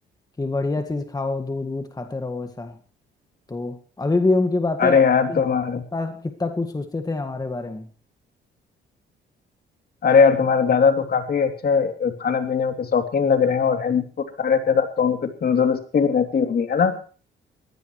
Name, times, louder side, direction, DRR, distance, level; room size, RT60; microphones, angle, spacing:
voice 1, 0.4-2.8 3.5-5.0 5.3-5.4 5.9-7.9, left 3 dB, 20° left, 6 dB, 1.9 m, -25 dB
voice 2, 4.8-5.8 10.0-14.0 14.4-16.9, left 6 dB, 50° left, 6 dB, 3.1 m, -20 dB
21.5 x 16.5 x 3.2 m, 0.41 s
cardioid pair, 90°, 20 cm